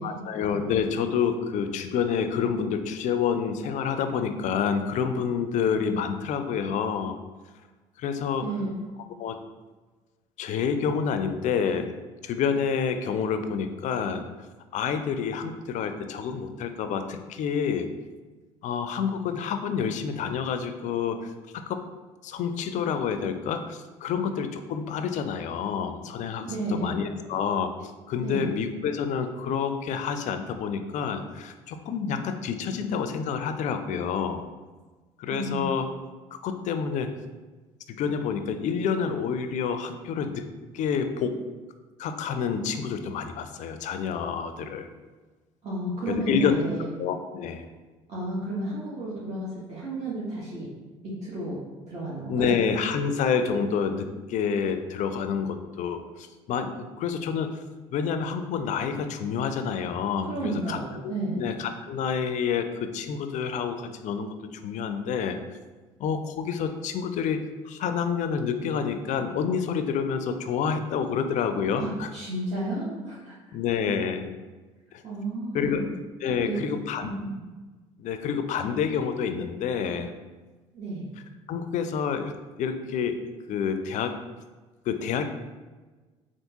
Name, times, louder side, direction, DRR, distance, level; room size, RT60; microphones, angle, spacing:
voice 1, 0.0-7.2 8.0-8.5 9.2-9.4 10.4-11.9 12.2-14.2 14.7-17.9 18.6-21.8 22.2-34.5 35.2-35.8 36.4-37.1 37.9-40.4 40.7-41.4 42.0-44.9 46.1-46.6 47.0-47.6 52.3-57.6 57.9-60.8 61.0-65.4 66.0-72.1 73.5-74.3 74.9-75.0 75.5-75.8 76.2-77.1 78.0-80.1 81.5-82.3 82.6-83.2 83.5-84.2 84.9-85.3, left 6 dB, 50° left, 8 dB, 0.4 m, -28 dB
voice 2, 8.4-8.7 26.4-26.9 28.2-28.5 35.3-35.6 45.6-46.8 48.1-50.7 51.0-51.6 51.9-52.6 60.2-61.4 71.7-73.3 75.0-75.9 76.2-76.6 77.0-77.4 80.7-81.1, right 2 dB, 45° right, -8 dB, 1.0 m, -32 dB
3.5 x 2.5 x 2.8 m, 1.3 s
hypercardioid pair, 65°, 15 cm